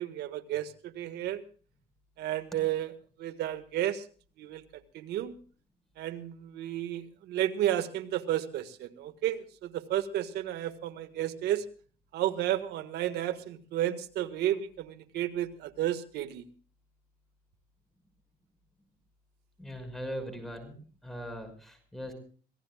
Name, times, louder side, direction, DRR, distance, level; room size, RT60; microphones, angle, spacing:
voice 1, 0.0-1.4 2.2-2.9 3.2-4.0 4.4-5.3 6.0-11.6 12.1-16.4, right 12 dB, 80° right, 10 dB, 1.7 m, -32 dB
voice 2, 19.6-22.1, equal, ahead, 6 dB, 5.9 m, -40 dB
26.5 x 17.5 x 2.4 m, 0.42 s
cardioid pair, 110°, 17 cm